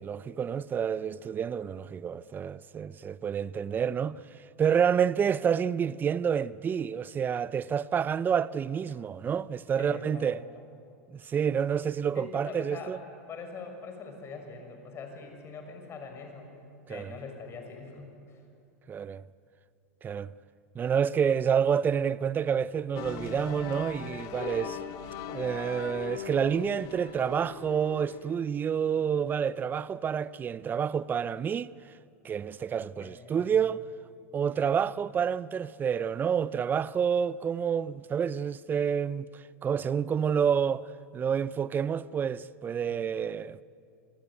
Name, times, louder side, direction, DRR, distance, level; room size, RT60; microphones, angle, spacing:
voice 1, 0.0-4.2 4.6-10.4 11.1-13.0 16.9-17.1 18.9-19.2 20.0-20.3 20.7-24.8 25.3-31.7 32.2-33.8 34.3-40.9 41.1-43.6, right 7 dB, 25° right, 0.7 m, -28 dB
voice 2, 9.8-10.7 12.1-13.0 13.3-16.5 16.9-18.4 33.0-33.7 34.5-34.7 42.9-43.2, left 4 dB, 30° left, 6.4 m, -43 dB
sound 1, 22.9-28.3, left 7 dB, 50° left, 2.3 m, -39 dB
27.5 x 20.5 x 9.7 m
hypercardioid pair, 110°, 8 cm